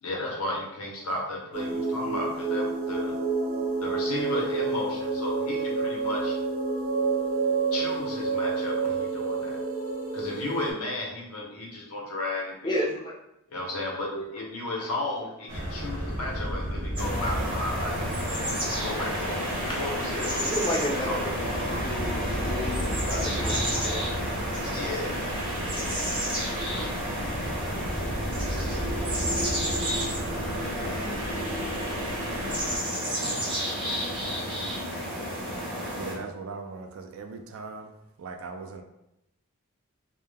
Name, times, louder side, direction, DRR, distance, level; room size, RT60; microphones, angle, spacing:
voice 1, 0.0-3.1 3.8-6.4 7.7-9.6 10.1-12.7 13.5-20.4 21.1-21.2 24.7-25.1, left 2 dB, 90° left, -2 dB, 0.7 m, -34 dB
sound 1, 1.5-10.7, right 4 dB, 50° right, 0.9 m, -28 dB
voice 2, 12.6-13.1 20.1-24.0, left 1 dB, 20° left, -3 dB, 0.4 m, -32 dB
sound 2, 15.5-32.8, equal, 90° right, 0.8 m, -34 dB
sound 3, 17.0-36.2, equal, 20° right, 0.6 m, -31 dB
voice 3, 35.9-37.9 38.2-38.8, right 4 dB, 65° right, 5 dB, 0.3 m, -39 dB
2.2 x 2.1 x 3.2 m, 0.84 s
head